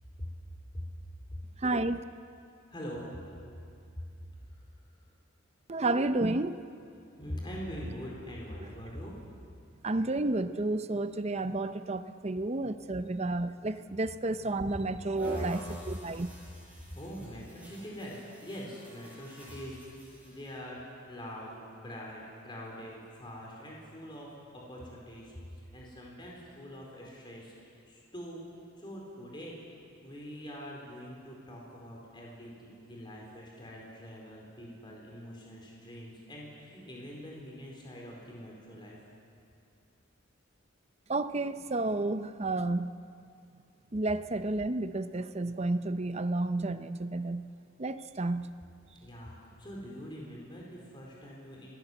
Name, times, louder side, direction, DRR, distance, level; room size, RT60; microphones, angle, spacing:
voice 1, 1.6-2.0 5.7-6.6 9.8-16.3 41.1-42.9 43.9-47.5 47.8-48.5, right 2 dB, 30° right, 11 dB, 0.7 m, -31 dB
voice 2, 2.7-3.2 7.2-9.1 14.7-14.8 15.2-15.5 16.1-16.2 16.9-20.8 21.1-24.3 24.5-28.4 28.8-29.5 30.0-39.0 49.0-51.7, equal, 25° left, -2 dB, 4.6 m, -43 dB
sound 1, 15.2-20.6, equal, 10° right, 8.0 m, -48 dB
27.0 x 19.0 x 8.1 m, 2.5 s
head